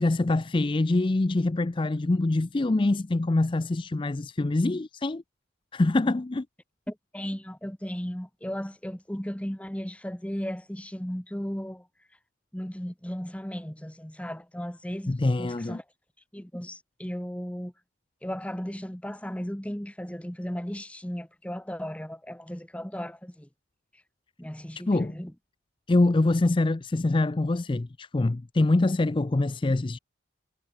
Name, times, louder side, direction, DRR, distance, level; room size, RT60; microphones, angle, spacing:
voice 1, 0.0-5.2 5.7-6.5 15.1-15.8 24.9-25.2 25.9-30.0, left 2 dB, 25° left, 0.4 m, -24 dB
voice 2, 6.9-11.9 12.5-15.8 16.3-17.7 18.2-23.5 24.4-25.3, equal, 5° left, 1.1 m, -36 dB
head